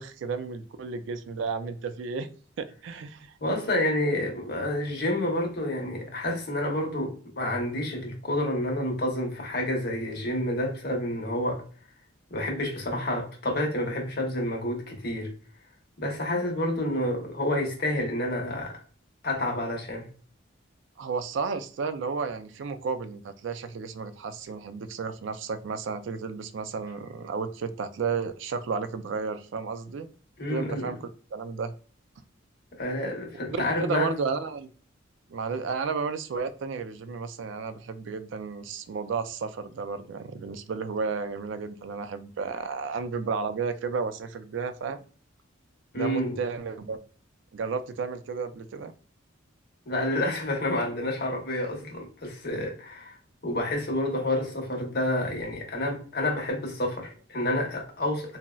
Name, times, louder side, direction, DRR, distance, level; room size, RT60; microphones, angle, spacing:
voice 1, 0.0-2.3 2.6-3.3 21.0-30.1 30.5-31.0 31.3-31.7 33.3-34.7 35.3-45.0 45.9-47.0 47.5-48.9, right 5 dB, 65° right, 0.3 m, -32 dB
voice 2, 3.4-11.6 12.3-15.3 16.0-18.8 19.2-20.1 30.4-30.8 32.7-34.1 45.9-46.4 49.9-53.2 53.4-58.4, left 1 dB, 55° left, 0.8 m, -29 dB
3.8 x 2.0 x 2.2 m
head